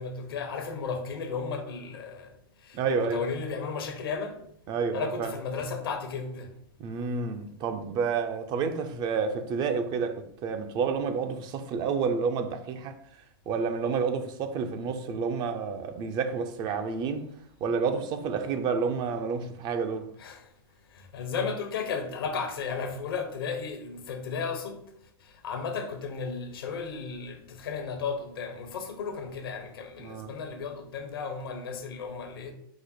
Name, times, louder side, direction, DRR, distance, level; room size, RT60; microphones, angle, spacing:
voice 1, 0.0-2.3 2.6-4.4 4.9-6.5 20.2-20.5 20.9-24.8 25.2-32.5, left 5 dB, 75° left, 0.9 m, -34 dB
voice 2, 2.7-3.3 4.7-5.3 6.8-13.0 13.5-17.3 17.6-20.1 30.0-30.3, right 5 dB, 35° right, 0.5 m, -29 dB
4.8 x 2.1 x 4.1 m
hypercardioid pair, 110°, 12 cm